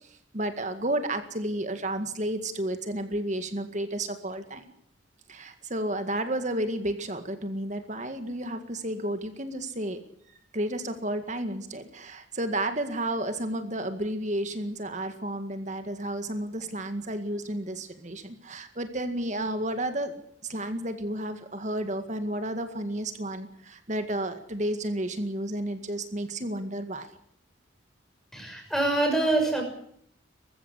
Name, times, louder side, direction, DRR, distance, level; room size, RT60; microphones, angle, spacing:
voice 1, 0.0-4.7 5.3-10.0 10.5-20.1 20.4-27.1, right 1 dB, 35° right, 8 dB, 2.0 m, -32 dB
voice 2, 28.3-29.6, right 2 dB, ahead, 2 dB, 6.0 m, -25 dB
21.0 x 15.5 x 9.8 m, 0.68 s
head